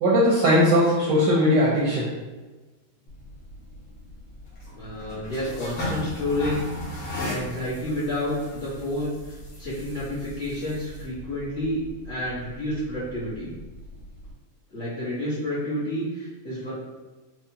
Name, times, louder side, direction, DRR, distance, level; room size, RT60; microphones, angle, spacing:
voice 1, 0.0-2.1, equal, 70° right, -6 dB, 1.1 m, -19 dB
sound 1, 3.1-14.3, left 1 dB, 70° left, 1.8 m, -38 dB
voice 2, 4.7-6.7 7.2-13.5 14.7-16.8, left 1 dB, 35° left, -12 dB, 1.2 m, -30 dB
4.5 x 2.4 x 2.8 m, 1.2 s
omnidirectional pair, 2.3 m